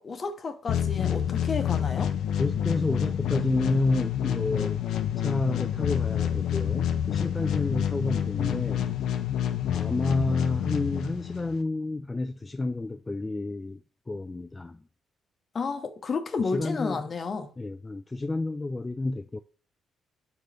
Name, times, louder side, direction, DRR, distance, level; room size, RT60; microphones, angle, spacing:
voice 1, 0.0-2.1 15.5-17.5, left 4 dB, 40° left, 0.9 m, -31 dB
sound 1, 0.7-11.6, left 9 dB, 80° left, 0.6 m, -28 dB
voice 2, 2.4-4.8 5.2-8.9 9.7-13.8 14.1-14.8 16.5-17.0 17.6-19.4, left 2 dB, 20° left, 0.3 m, -30 dB
4.8 x 4.0 x 5.1 m
cardioid pair, 90°, 0 cm